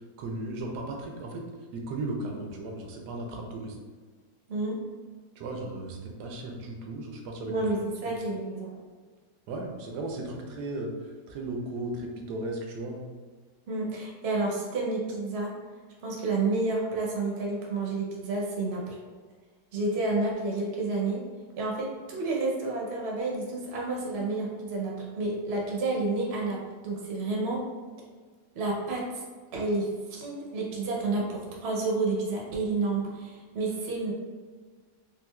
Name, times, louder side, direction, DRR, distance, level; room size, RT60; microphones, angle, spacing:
voice 1, 0.2-1.4 1.7-3.8 5.4-7.5 8.1-8.2 9.5-10.9 11.3-13.1, right 2 dB, 90° right, 1 dB, 1.2 m, -36 dB
voice 2, 4.5-4.8 7.5-8.8 13.7-15.6 16.0-19.0 19.7-21.2 21.6-27.6 28.5-29.2 29.5-34.1, right 3 dB, 60° right, -2 dB, 0.7 m, -30 dB
3.7 x 2.5 x 2.2 m, 1.5 s
omnidirectional pair, 1.7 m